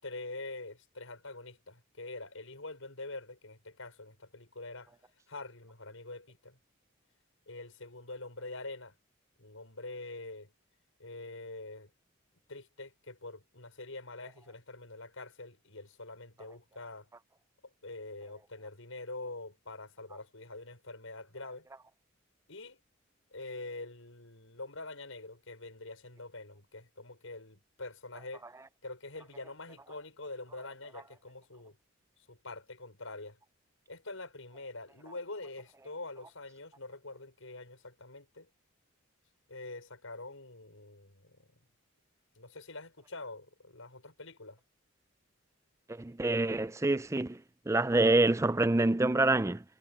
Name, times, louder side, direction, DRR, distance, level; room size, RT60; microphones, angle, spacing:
voice 1, 0.0-4.9 5.3-6.6 7.5-8.9 9.4-10.5 11.0-11.9 12.5-17.1 17.8-21.7 22.5-22.8 23.3-28.4 28.8-31.8 32.3-33.4 33.9-38.5 39.5-41.5 42.4-44.6, left 2 dB, 75° left, 5.9 m, -45 dB
voice 2, 45.9-49.6, right 2 dB, 15° right, 0.4 m, -27 dB
head